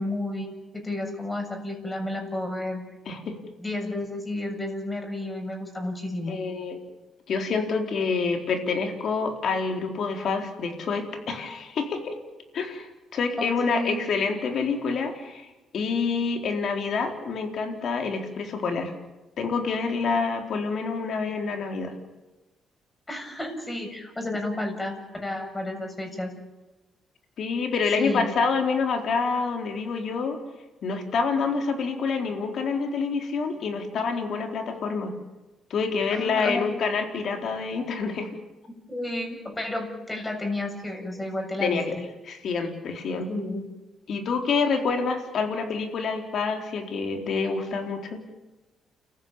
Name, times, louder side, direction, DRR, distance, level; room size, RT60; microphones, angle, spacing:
voice 1, 0.0-2.8 3.6-6.4 13.4-14.0 23.1-26.3 28.0-28.3 36.1-36.6 38.9-42.1 43.3-43.6, left 1 dB, 15° left, 4 dB, 7.2 m, -31 dB
voice 2, 6.3-6.8 7.3-12.1 12.5-15.5 15.7-18.9 19.4-21.9 27.4-30.4 30.8-35.1 35.7-38.3 41.6-42.0 42.2-43.3 44.1-48.2, left 4 dB, 65° left, 4 dB, 4.2 m, -27 dB
30.0 x 14.5 x 9.0 m, 1.1 s
cardioid pair, 90°, 0 cm